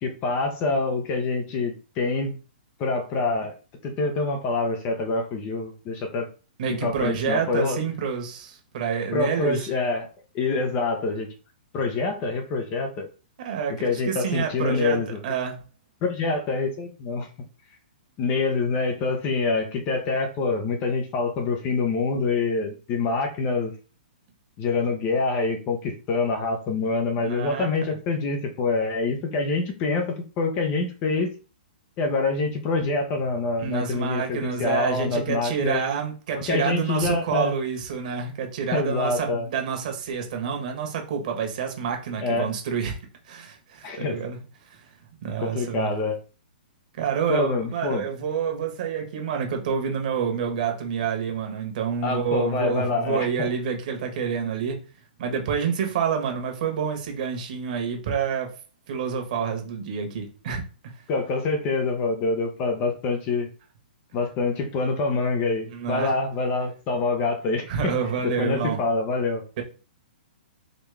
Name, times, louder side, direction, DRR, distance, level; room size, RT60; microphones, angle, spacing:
voice 1, 0.0-2.4 2.8-3.5 3.8-6.3 6.7-7.8 9.1-10.1 10.3-11.3 11.7-13.1 13.8-15.2 16.0-17.3 18.2-23.7 24.6-30.1 30.4-31.3 32.0-35.8 36.3-37.5 38.7-39.5 42.2-42.5 43.8-44.2 45.4-46.2 47.3-48.0 52.0-53.5 61.1-63.5 64.1-67.9 68.2-69.4, left 3 dB, 30° left, 0.9 m, -26 dB
voice 2, 6.6-9.7 13.4-15.6 27.2-27.7 33.6-43.0 43.3-44.4 44.6-44.9 45.2-46.0 47.0-54.8 55.2-58.5 58.9-60.6 65.7-66.1 67.7-68.8 69.6-69.7, right 7 dB, 50° right, 1.5 m, -28 dB
4.0 x 3.0 x 3.5 m
hypercardioid pair, 155°, 6 cm